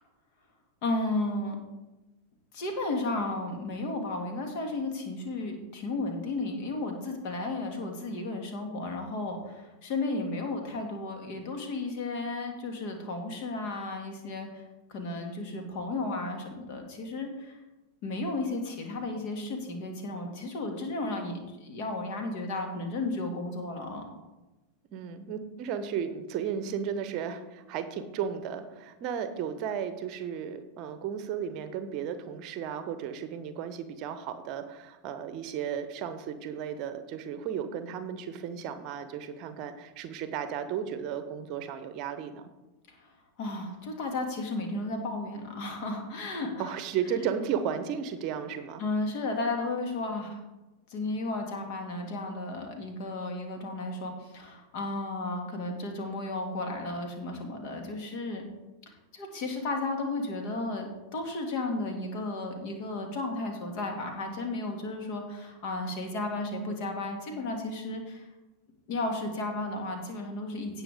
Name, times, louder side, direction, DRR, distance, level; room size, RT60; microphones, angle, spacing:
voice 1, 0.8-1.6 2.5-14.6 14.9-17.6 18.0-24.1 43.0-43.1 43.4-46.7 48.8-50.4 50.9-58.5 59.1-68.2 68.9-70.8, left 2 dB, 45° left, 3 dB, 2.3 m, -33 dB
voice 2, 24.9-42.4 46.6-48.8, right 8 dB, 40° right, 10 dB, 0.9 m, -34 dB
17.0 x 5.9 x 3.6 m, 1.1 s
figure-of-eight pair, 90°, 0 cm